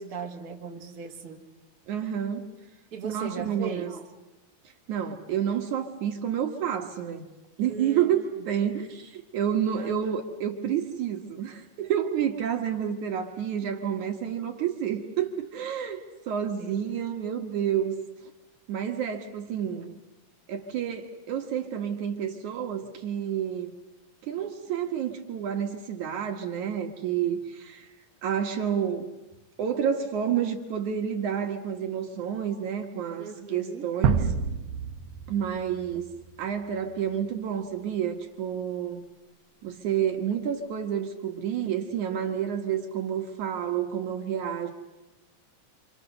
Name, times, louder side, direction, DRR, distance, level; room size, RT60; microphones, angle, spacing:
voice 1, 0.0-1.4 2.9-4.0 7.7-8.4 9.8-9.9 16.6-16.8 33.2-33.9, right 5 dB, 30° right, 1 dB, 2.2 m, -38 dB
voice 2, 1.9-2.5 3.0-4.0 4.9-7.3 7.6-18.0 18.7-20.0 20.5-23.7 24.2-27.9 28.2-29.1 29.6-34.3 35.3-36.0 36.4-39.0 39.6-44.7, right 9 dB, 65° right, 5 dB, 2.8 m, -29 dB
sound 1, 34.0-37.0, right 6 dB, 80° right, 2.9 m, -29 dB
28.0 x 28.0 x 6.7 m, 1.0 s
omnidirectional pair, 3.9 m